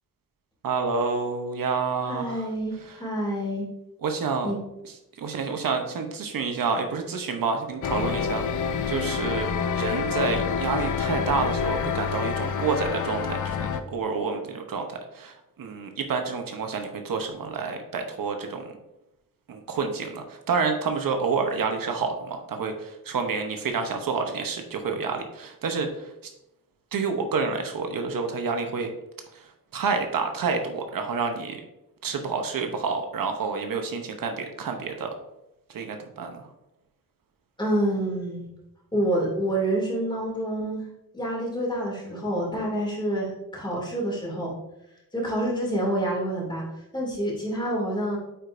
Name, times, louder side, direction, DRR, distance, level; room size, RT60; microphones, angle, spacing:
voice 1, 0.6-2.4 2.8-3.0 4.0-4.5 4.8-18.7 19.5-26.1 26.9-28.9 29.3-31.6 32.0-35.1 35.7-36.5, right 4 dB, 75° right, 5 dB, 0.9 m, -29 dB
voice 2, 2.1-3.6 4.4-4.6 37.6-38.4 38.9-40.8 41.1-44.5 45.1-46.6 46.9-48.2, right 1 dB, 15° left, -4 dB, 2.5 m, -27 dB
sound 1, 7.8-13.8, left 7 dB, 60° left, 0.5 m, -27 dB
8.9 x 4.9 x 2.5 m, 0.89 s
wide cardioid pair, 130°, 34 cm